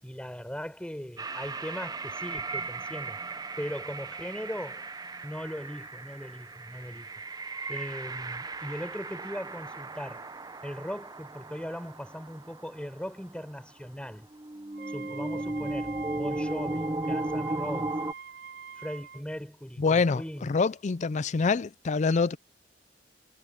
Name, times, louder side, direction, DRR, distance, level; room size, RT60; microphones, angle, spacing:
voice 1, 0.0-3.2 3.6-4.9 5.2-7.1 7.7-10.2 10.6-14.3 14.9-18.0 18.8-20.5, equal, 5° left, 5.4 m, -39 dB
sound 1, 1.2-12.9 13.4-13.5 14.3-18.1, right 2 dB, 20° right, 0.7 m, -36 dB
Wind instrument woodwind instrument, 14.7-19.2, right 6 dB, 75° right, 4.6 m, -45 dB
voice 2, 19.8-22.4, left 4 dB, 40° left, 0.4 m, -26 dB
head